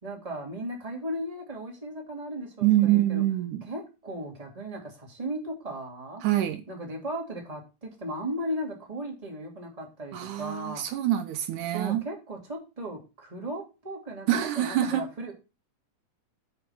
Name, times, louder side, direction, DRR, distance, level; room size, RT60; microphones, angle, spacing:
voice 1, 0.0-3.2 3.7-6.2 6.7-10.8 11.7-14.3 14.5-15.3, right 1 dB, 10° right, 2.5 m, -36 dB
voice 2, 2.6-3.6 6.2-6.6 10.1-12.0 14.3-15.0, right 13 dB, 80° right, 2.3 m, -25 dB
9.3 x 4.8 x 6.1 m
omnidirectional pair, 3.7 m